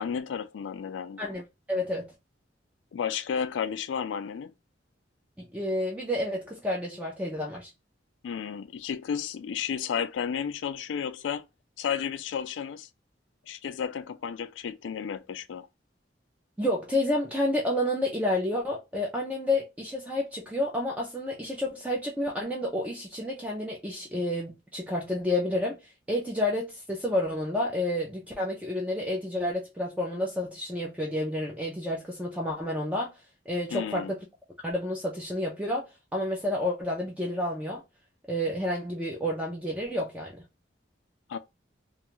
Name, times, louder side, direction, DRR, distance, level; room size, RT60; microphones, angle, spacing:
voice 1, 0.0-1.2 2.9-4.5 8.2-11.5 11.8-12.9 13.5-15.7 33.7-34.1 41.3-41.4, left 7 dB, 85° left, 0.3 m, -32 dB
voice 2, 1.2-2.1 5.4-7.7 16.6-25.8 26.1-33.1 33.5-34.2 34.6-35.9 36.1-37.8 38.3-40.4, left 1 dB, 10° right, 0.4 m, -30 dB
2.5 x 2.3 x 3.0 m
head